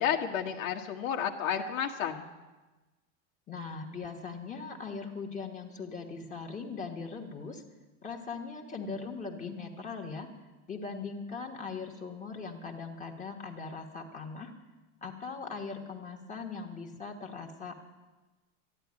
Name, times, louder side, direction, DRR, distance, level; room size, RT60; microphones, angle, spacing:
voice 1, 0.0-2.2, left 8 dB, 75° left, 2 dB, 1.5 m, -31 dB
voice 2, 3.5-7.6 8.0-10.3 10.7-14.5 15.0-17.8, left 4 dB, 20° left, 1 dB, 1.4 m, -40 dB
13.5 x 9.9 x 9.7 m, 1.2 s
supercardioid pair, 155°, 42 cm